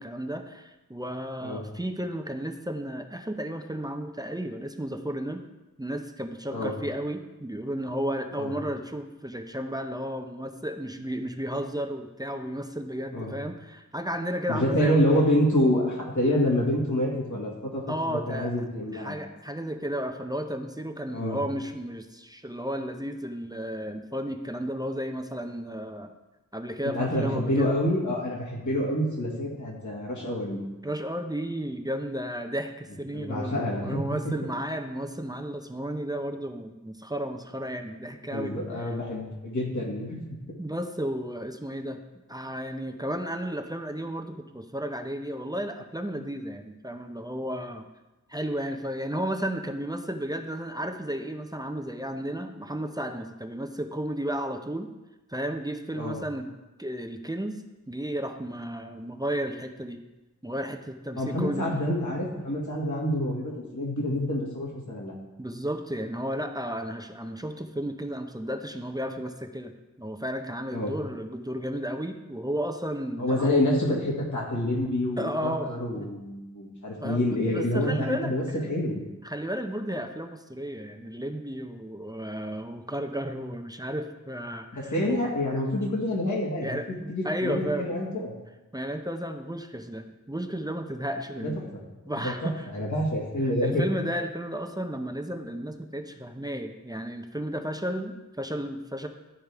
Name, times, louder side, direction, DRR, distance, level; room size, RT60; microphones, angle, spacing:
voice 1, 0.0-5.4 5.8-15.0 17.9-18.5 18.9-26.1 26.5-27.7 30.8-38.5 38.8-39.0 40.6-42.0 42.3-47.9 48.3-54.9 55.3-56.5 56.8-60.0 60.4-61.6 65.4-69.7 70.0-73.5 75.2-76.1 77.0-78.6 79.2-85.2 86.6-87.9 88.7-91.6 92.1-92.7 93.4-99.1, equal, 15° right, 5 dB, 0.6 m, -33 dB
voice 2, 14.5-17.8 18.1-19.2 21.1-21.4 26.8-30.6 33.1-34.3 38.3-40.4 56.0-56.2 61.1-65.1 70.7-70.9 73.2-79.0 84.7-86.8 87.1-88.3 92.2-93.9, left 1 dB, 70° left, -3 dB, 1.9 m, -27 dB
12.5 x 4.6 x 3.5 m, 1.0 s
wide cardioid pair, 60°, 31 cm